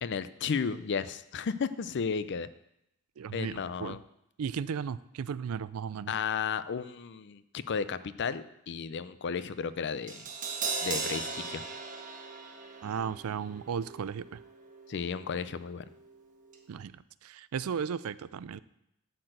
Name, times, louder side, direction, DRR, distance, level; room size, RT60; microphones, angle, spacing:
voice 1, 0.0-2.5 3.3-4.0 6.1-10.3 10.8-11.6 14.9-15.9, left 6 dB, 55° left, 14 dB, 0.5 m, -33 dB
voice 2, 3.2-4.0 4.4-6.1 12.8-14.4 16.7-17.0 17.2-18.6, right 7 dB, 75° right, 17 dB, 0.4 m, -35 dB
Crash cymbal, 10.1-16.2 16.5-16.6, right 4 dB, 40° right, 1.1 m, -39 dB
12.0 x 4.4 x 7.7 m, 0.82 s
head